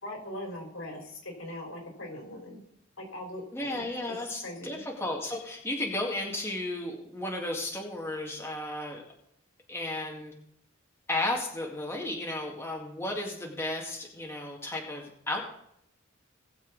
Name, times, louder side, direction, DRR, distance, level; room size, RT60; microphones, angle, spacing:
voice 1, 0.0-2.6 3.0-4.2 4.4-4.8, left 1 dB, 80° left, 1 dB, 4.1 m, -41 dB
voice 2, 3.5-9.0 9.7-10.3 11.1-15.4, left 1 dB, 10° left, -1 dB, 2.0 m, -34 dB
19.5 x 7.2 x 4.1 m, 0.74 s
head